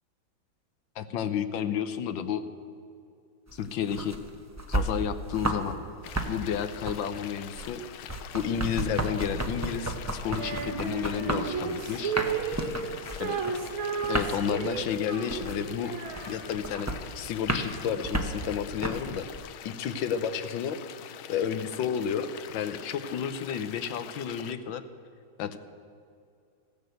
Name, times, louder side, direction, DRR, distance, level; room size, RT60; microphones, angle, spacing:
voice 1, 1.0-2.4 3.5-4.2 4.7-5.8 6.3-7.8 8.3-10.0 10.2-12.2 13.2-13.4 14.1-15.9 16.3-24.8 25.4-25.6, left 8 dB, 75° left, 11 dB, 1.5 m, -31 dB
sound 1, 3.5-5.7 6.0-19.4, right 1 dB, 15° right, 0.5 m, -33 dB
sound 2, 6.0-24.5, left 11 dB, 90° left, 1.5 m, -45 dB
Female singing, 10.4-16.9, right 6 dB, 85° right, 2.0 m, -34 dB
15.0 x 10.5 x 8.0 m, 2.4 s
omnidirectional pair, 2.2 m